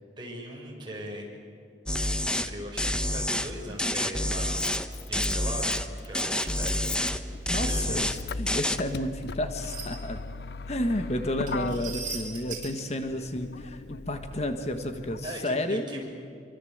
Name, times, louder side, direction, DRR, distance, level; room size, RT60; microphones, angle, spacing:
voice 1, 0.2-1.3 2.1-4.6 5.1-6.9 7.6-8.0 9.6-9.7 13.1-13.4 15.2-16.0, right 1 dB, 25° right, -2 dB, 6.5 m, -40 dB
sound 1, 1.9-2.5 2.8-3.5 3.8-4.9 5.1-5.9 6.1-7.2 7.5-8.2 8.5-8.8, left 1 dB, 5° left, 1.1 m, -28 dB
Motor vehicle (road), 2.9-3.0 4.2-15.3, left 4 dB, 65° left, 0.6 m, -39 dB
voice 2, 7.5-10.2 10.7-16.0, left 1 dB, 40° left, 7 dB, 1.4 m, -31 dB
sound 2, 9.7-9.9 11.5-12.8, right 6 dB, 50° right, 7.4 m, -37 dB
25.5 x 24.5 x 8.0 m, 2.4 s
head